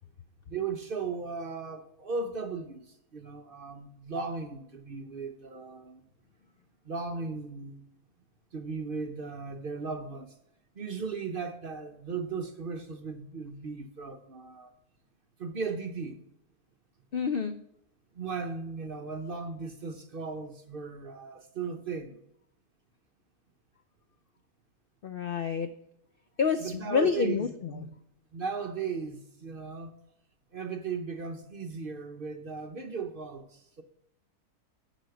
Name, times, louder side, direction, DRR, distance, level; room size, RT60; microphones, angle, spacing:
voice 1, 0.5-6.0 6.8-7.8 8.5-10.4 10.7-14.7 15.4-16.2 18.1-22.2 26.6-28.0 28.3-29.9 30.5-33.8, right 5 dB, 45° right, 0.8 m, -37 dB
voice 2, 17.1-17.6 25.0-25.7 26.4-27.7, left 6 dB, 70° left, 0.5 m, -28 dB
10.5 x 4.2 x 7.8 m
omnidirectional pair, 1.6 m